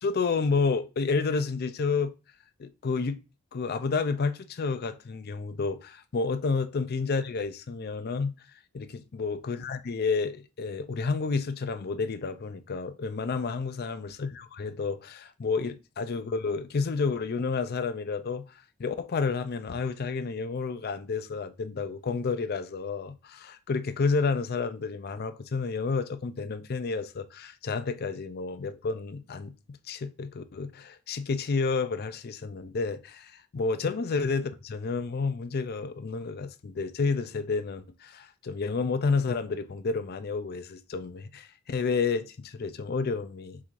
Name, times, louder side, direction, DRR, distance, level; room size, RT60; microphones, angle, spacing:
voice 1, 0.0-2.1 2.6-3.2 3.5-8.4 8.7-18.5 18.8-29.5 29.9-43.6, left 4 dB, 45° left, 0.4 m, -30 dB
5.6 x 3.2 x 2.5 m
head